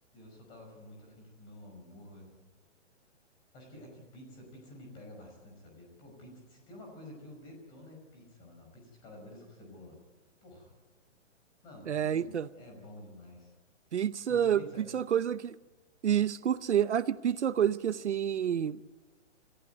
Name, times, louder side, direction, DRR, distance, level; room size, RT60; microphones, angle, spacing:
voice 1, 0.1-2.3 3.5-10.0 10.4-10.7 11.6-13.5 13.9-14.9, left 1 dB, 10° left, 1 dB, 5.4 m, -51 dB
voice 2, 11.9-12.5 13.9-15.6 16.0-18.8, right 9 dB, 65° right, 14 dB, 0.8 m, -28 dB
28.0 x 14.5 x 9.4 m, 1.2 s
hypercardioid pair, 180°, 37 cm